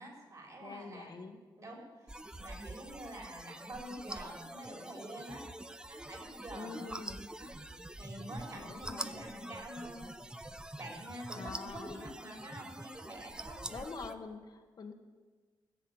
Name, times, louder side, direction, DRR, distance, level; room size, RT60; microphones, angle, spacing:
voice 1, 0.0-1.3 1.6-5.5 5.9-7.0 7.4-7.5 7.9-10.0 10.8-14.0, right 1 dB, 40° right, 0 dB, 3.9 m, -47 dB
voice 2, 0.6-1.4 6.5-7.2 8.5-9.6 11.3-12.1 13.7-14.9, left 4 dB, 50° left, 5 dB, 1.2 m, -46 dB
sound 1, 2.1-14.1, right 1 dB, 10° right, 0.5 m, -45 dB
14.0 x 7.6 x 8.8 m, 1.4 s
wide cardioid pair, 140°, 9 cm